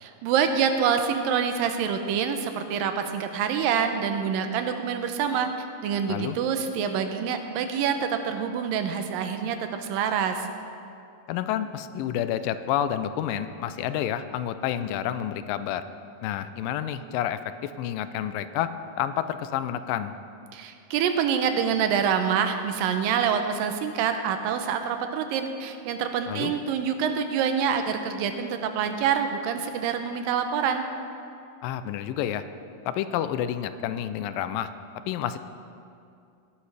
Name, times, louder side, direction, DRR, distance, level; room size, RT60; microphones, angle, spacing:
voice 1, 0.0-5.5 5.8-10.5 20.5-30.8, right 7 dB, 90° right, 7 dB, 2.5 m, -26 dB
voice 2, 11.3-15.8 16.2-18.7 19.0-20.1 26.3-26.5 31.6-32.4 32.9-34.7 35.1-35.4, left 10 dB, 85° left, 12 dB, 2.3 m, -29 dB
17.5 x 11.0 x 3.4 m, 2.5 s
omnidirectional pair, 3.9 m